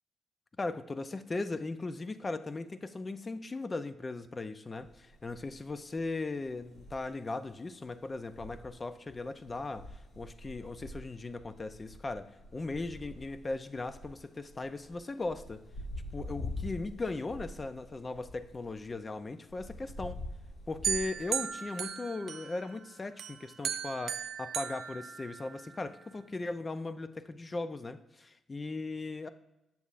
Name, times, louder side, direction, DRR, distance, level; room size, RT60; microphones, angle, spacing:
voice 1, 0.6-15.6 16.1-20.2 20.7-29.3, left 3 dB, 30° left, 12 dB, 0.5 m, -38 dB
sound 1, 4.8-21.8, left 1 dB, 55° left, 1.6 m, -46 dB
sound 2, 20.8-22.8 23.2-25.7, right 7 dB, 70° right, 0.4 m, -36 dB
8.1 x 7.0 x 2.5 m, 0.94 s
cardioid pair, 65°, 0 cm